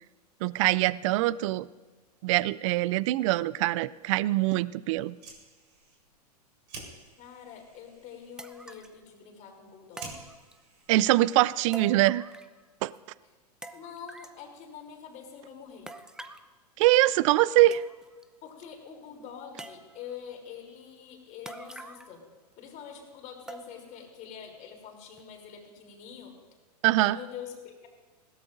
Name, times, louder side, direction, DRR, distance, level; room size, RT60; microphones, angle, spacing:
voice 1, 0.4-1.7 2.2-5.2 10.9-12.2 12.8-12.9 16.8-17.8 26.8-27.2, right 16 dB, 50° right, 20 dB, 0.4 m, -23 dB
Fire, 5.1-11.9, right 3 dB, 70° right, 4.2 m, -50 dB
voice 2, 7.2-10.1 13.7-15.9 18.4-22.2 22.6-26.4 27.0-27.9, left 8 dB, 35° left, 1 dB, 3.3 m, -45 dB
sound 1, 7.6-7.7 8.4-9.0 10.0-10.8 11.7-12.6 12.9-13.0 13.6-14.4 15.9-16.5 17.3-17.4 17.7-18.2 18.6-18.7 19.6-20.2 21.4-22.2 22.5-22.6 23.5-24.0 24.4-24.5 25.2-25.3, right 1 dB, 5° right, 0.6 m, -45 dB
20.5 x 17.0 x 2.6 m, 1.3 s
hypercardioid pair, 100°, 21 cm